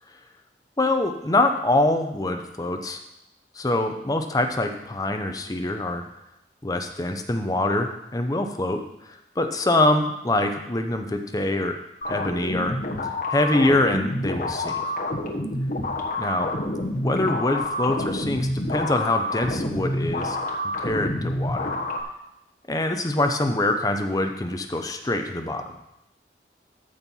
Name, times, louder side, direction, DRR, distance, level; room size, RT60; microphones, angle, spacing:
voice 1, 0.8-3.0 3.6-6.0 6.6-8.8 9.4-11.8 12.1-12.8 13.3-14.8 16.2-16.5 17.0-20.4 20.8-21.8 22.7-25.7, left 2 dB, 20° left, 5 dB, 0.7 m, -24 dB
sound 1, 12.0-22.0, left 1 dB, 45° left, 1.2 m, -28 dB
13.5 x 4.6 x 5.5 m, 0.84 s
head